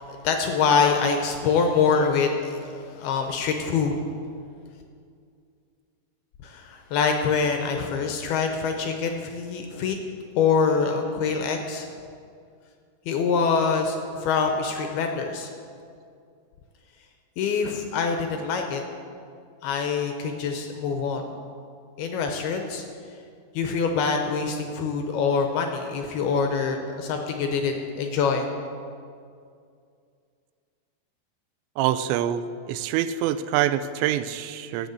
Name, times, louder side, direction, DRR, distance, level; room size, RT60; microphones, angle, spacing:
voice 1, 0.1-4.0 6.4-10.0 10.4-11.9 13.1-15.5 17.4-18.8 19.6-21.3 22.0-22.9 23.5-28.5, left 5 dB, 75° left, 4 dB, 2.5 m, -25 dB
voice 2, 31.8-34.9, right 11 dB, 85° right, 13 dB, 2.9 m, -25 dB
12.0 x 8.7 x 7.9 m, 2.3 s
omnidirectional pair, 5.1 m